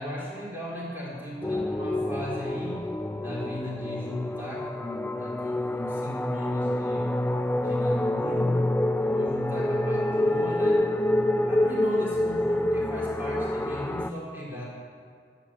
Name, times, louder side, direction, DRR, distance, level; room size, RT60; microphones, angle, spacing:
voice 1, 0.0-2.8 3.2-7.2 7.6-8.6 9.0-10.9 11.5-14.6, left 1 dB, 10° right, -7 dB, 3.8 m, -36 dB
sound 1, 1.4-14.1, left 1 dB, 10° left, 0.3 m, -27 dB
11.5 x 8.3 x 7.4 m, 2.2 s
head